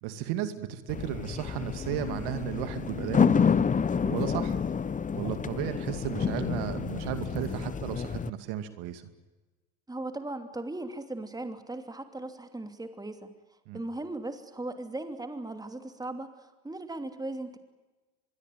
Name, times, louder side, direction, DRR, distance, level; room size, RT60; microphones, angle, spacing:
voice 1, 0.0-3.7 4.0-4.6 5.1-9.0 13.7-13.8, right 11 dB, 65° right, 10 dB, 2.5 m, -34 dB
sound 1, 0.9-8.3, left 6 dB, 20° left, 0.9 m, -29 dB
voice 2, 9.9-13.3 13.7-17.6, right 2 dB, 10° right, 7 dB, 2.9 m, -38 dB
24.5 x 22.0 x 9.4 m, 1.2 s
hypercardioid pair, 90°, 42 cm